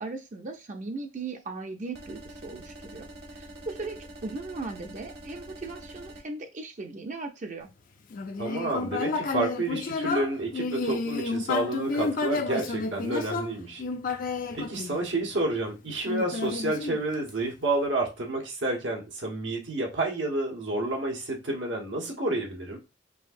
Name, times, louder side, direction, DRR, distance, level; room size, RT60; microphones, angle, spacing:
voice 1, 0.0-3.1 3.3-7.7, right 3 dB, 40° right, 0.6 m, -38 dB
sound 1, 1.9-6.2, right 1 dB, 60° right, 1.2 m, -45 dB
Human voice, 8.1-15.5 16.1-17.5, left 4 dB, 45° left, 0.5 m, -31 dB
voice 2, 8.4-13.8 14.2-22.8, right 2 dB, 85° right, 1.3 m, -30 dB
5.5 x 2.7 x 2.5 m
head